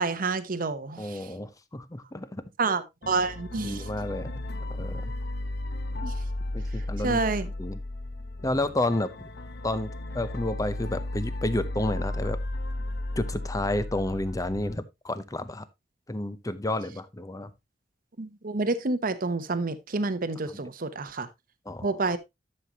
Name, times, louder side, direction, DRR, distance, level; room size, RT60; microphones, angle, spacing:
voice 1, 0.0-1.3 2.6-3.9 6.0-6.2 7.0-7.5 18.2-21.3 21.8-22.2, right 3 dB, 50° right, 0.9 m, -28 dB
voice 2, 1.0-2.4 3.6-4.3 4.8-5.1 6.5-7.2 7.6-7.8 8.4-9.1 9.6-12.4 13.2-15.7 16.1-17.5 21.7-21.9, left 1 dB, 20° left, 0.7 m, -30 dB
sound 1, 3.0-14.7, left 1 dB, 60° left, 1.0 m, -34 dB
11.5 x 6.7 x 2.8 m
head